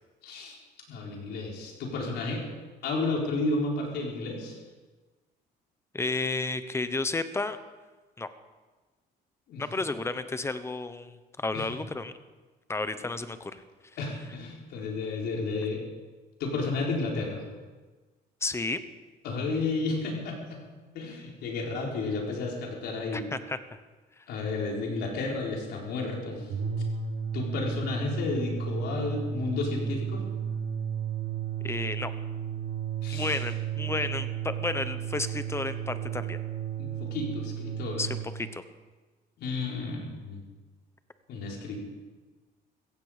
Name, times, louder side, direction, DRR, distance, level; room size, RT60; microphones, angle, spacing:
voice 1, 0.2-0.6 0.9-2.4 2.8-4.6 9.5-9.6 11.5-11.7 14.0-15.8 16.4-17.5 19.2-20.6 20.9-23.2 24.3-26.5 27.3-30.2 33.0-33.4 36.8-38.0 39.4-40.4 41.3-41.8, left 3 dB, 75° left, -1 dB, 4.4 m, -32 dB
voice 2, 5.9-7.6 8.2-8.3 9.6-12.1 12.7-13.6 18.4-18.8 23.1-23.8 31.6-32.1 33.1-36.4 38.0-38.6, left 3 dB, 15° left, 12 dB, 1.0 m, -32 dB
sound 1, 26.4-38.3, right 6 dB, 80° right, 3.4 m, -33 dB
16.0 x 15.5 x 5.1 m, 1.3 s
cardioid pair, 110°, 17 cm